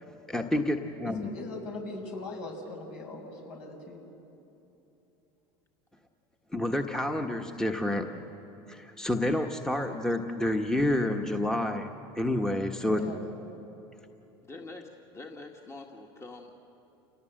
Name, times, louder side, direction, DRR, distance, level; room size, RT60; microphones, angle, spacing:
voice 1, 0.3-1.3 6.5-8.1 8.7-13.0, left 1 dB, 5° left, 3 dB, 1.4 m, -29 dB
voice 2, 1.0-4.0 12.8-13.2, left 2 dB, 65° left, 1 dB, 6.7 m, -40 dB
voice 3, 14.4-16.5, left 3 dB, 20° left, 1 dB, 1.9 m, -45 dB
29.0 x 18.5 x 7.8 m, 3.0 s
hypercardioid pair, 95°, 13 cm